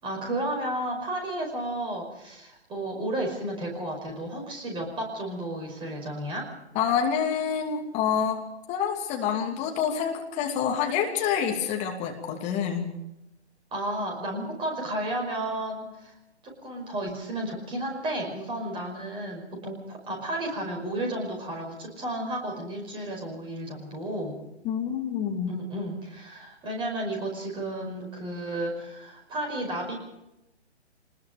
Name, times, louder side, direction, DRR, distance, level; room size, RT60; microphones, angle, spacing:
voice 1, 0.0-6.5 13.7-16.1 16.6-24.4 25.5-29.9, right 1 dB, 15° right, 0 dB, 5.3 m, -32 dB
voice 2, 6.7-8.4 8.7-12.9 24.6-25.6, left 7 dB, 20° left, 2 dB, 2.7 m, -27 dB
24.5 x 21.0 x 5.3 m, 0.90 s
figure-of-eight pair, 130°, 35 cm